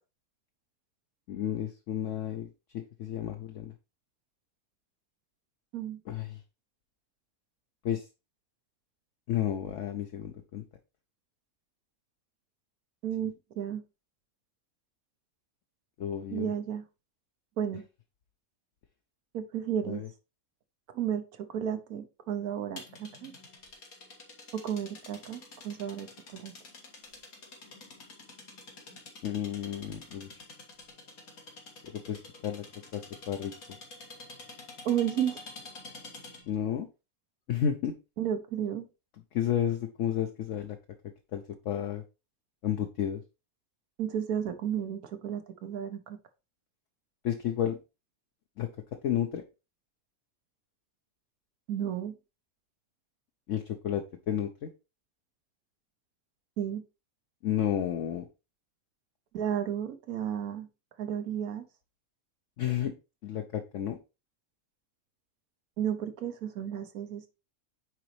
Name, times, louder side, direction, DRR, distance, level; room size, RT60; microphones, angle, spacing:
voice 1, 1.3-2.5 2.7-3.7 6.1-6.4 7.8-8.1 9.3-10.6 16.0-16.5 19.9-20.1 29.2-30.3 31.9-32.6 32.9-33.5 36.5-36.9 37.5-37.9 39.3-40.8 41.3-42.0 42.6-43.2 47.2-47.8 48.6-48.7 49.0-49.4 53.5-54.7 57.4-58.3 62.6-62.9 63.2-64.0, left 10 dB, 65° left, 5 dB, 1.0 m, -31 dB
voice 2, 13.0-13.8 16.3-16.8 17.6-17.8 19.3-20.0 20.9-23.3 24.5-26.5 34.8-35.4 38.2-38.9 44.0-46.2 51.7-52.1 56.6-56.8 59.3-60.7 61.0-61.6 65.8-67.2, right 9 dB, 85° right, 8 dB, 1.4 m, -33 dB
sound 1, 22.8-36.5, left 3 dB, 85° left, 2.1 m, -48 dB
9.3 x 3.9 x 3.1 m, 0.28 s
omnidirectional pair, 1.5 m